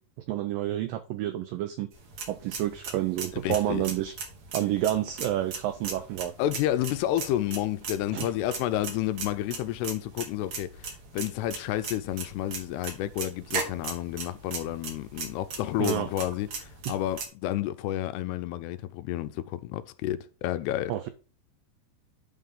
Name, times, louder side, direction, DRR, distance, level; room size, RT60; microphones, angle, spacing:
voice 1, 0.3-1.9 2.3-4.1 4.5-6.3 8.1-8.3 15.8-16.3 20.9-21.1, right 13 dB, 90° right, 1.9 m, -29 dB
sound 1, 1.9-17.3, right 4 dB, 50° right, 2.8 m, -39 dB
voice 2, 3.4-3.8 6.4-21.1, left 13 dB, 85° left, 2.7 m, -30 dB
9.0 x 3.8 x 6.7 m
omnidirectional pair, 4.7 m